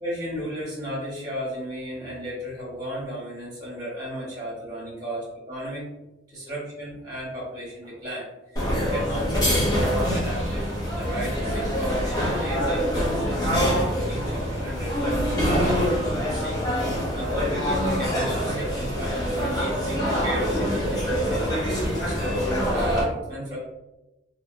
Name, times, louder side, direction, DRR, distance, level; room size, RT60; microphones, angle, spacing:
voice 1, 0.0-5.9 6.3-8.6 8.9-16.6 17.1-23.6, equal, 20° right, -7 dB, 1.3 m, -34 dB
sound 1, 8.6-23.0, equal, 20° left, 0.6 m, -25 dB
2.7 x 2.2 x 2.6 m, 0.96 s
head